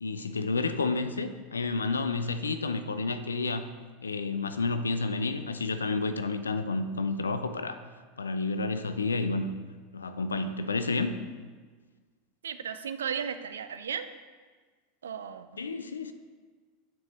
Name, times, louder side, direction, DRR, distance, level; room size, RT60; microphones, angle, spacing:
voice 1, 0.0-3.7 4.0-7.8 8.2-9.5 9.9-11.2 15.6-16.1, left 3 dB, 85° left, 11 dB, 0.4 m, -30 dB
voice 2, 12.4-14.1 15.0-15.6, right 7 dB, 80° right, 11 dB, 0.4 m, -35 dB
9.1 x 4.6 x 3.2 m, 1.5 s
hypercardioid pair, 85°, 0 cm